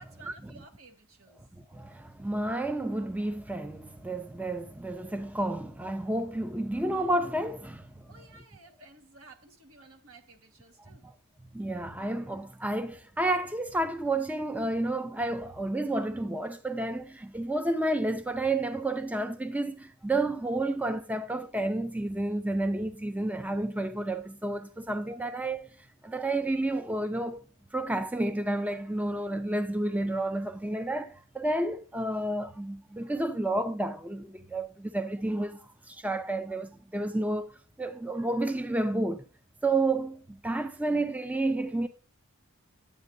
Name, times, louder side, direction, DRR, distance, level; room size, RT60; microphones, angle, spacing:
voice 1, 0.0-1.4 8.1-11.0, right 3 dB, 75° right, 1.4 m, -54 dB
voice 2, 1.5-8.1 10.8-11.1 11.5-25.7 26.0-27.4 27.7-37.5 37.8-39.3 39.6-41.9, right 2 dB, 5° right, 0.4 m, -31 dB
10.5 x 8.1 x 2.6 m
head